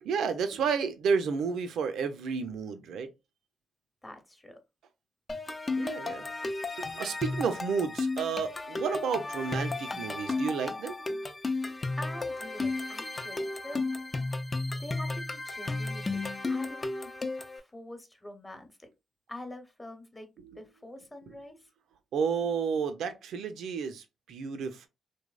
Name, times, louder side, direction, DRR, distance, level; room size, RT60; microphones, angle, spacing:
voice 1, 0.0-3.1 5.8-6.3 6.7-11.2 20.4-20.6 21.3-21.4 22.1-24.9, right 6 dB, 80° right, 0.4 m, -31 dB
voice 2, 4.0-4.6 11.9-13.8 14.8-17.1 17.5-18.9 19.3-20.3 20.5-21.7, left 1 dB, 15° left, 0.8 m, -45 dB
sound 1, 5.3-17.6, left 3 dB, 35° left, 0.4 m, -33 dB
2.7 x 2.0 x 2.3 m
supercardioid pair, 55°, 0 cm